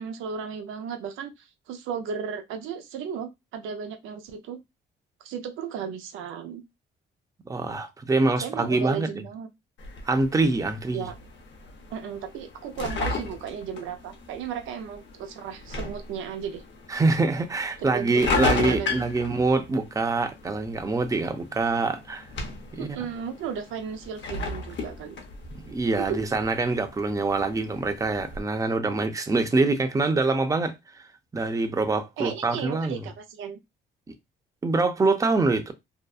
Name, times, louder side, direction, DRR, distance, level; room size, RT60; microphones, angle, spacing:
voice 1, 0.0-4.6 5.2-6.6 8.4-9.5 10.9-11.1 11.9-16.6 17.8-18.9 22.7-25.2 26.0-26.2 32.2-33.6, right 7 dB, 85° right, 0.5 m, -35 dB
voice 2, 7.5-9.1 10.1-11.1 16.9-22.3 22.7-23.0 25.5-30.7 31.3-33.0 34.6-35.7, right 3 dB, 15° right, 0.5 m, -25 dB
sound 1, 9.8-28.4, left 4 dB, 65° left, 0.7 m, -35 dB
2.7 x 2.2 x 2.3 m
cardioid pair, 90°, 20 cm